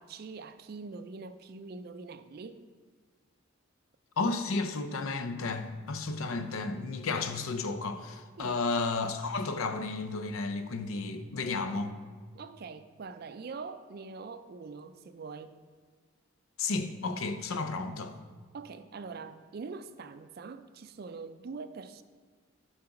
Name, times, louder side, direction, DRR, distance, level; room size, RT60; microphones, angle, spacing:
voice 1, 0.0-2.7 8.4-8.6 12.3-15.6 18.5-22.0, right 4 dB, 45° right, 11 dB, 0.4 m, -43 dB
voice 2, 4.2-12.0 16.6-18.1, left 3 dB, 85° left, 9 dB, 0.6 m, -32 dB
7.5 x 3.9 x 5.8 m, 1.5 s
head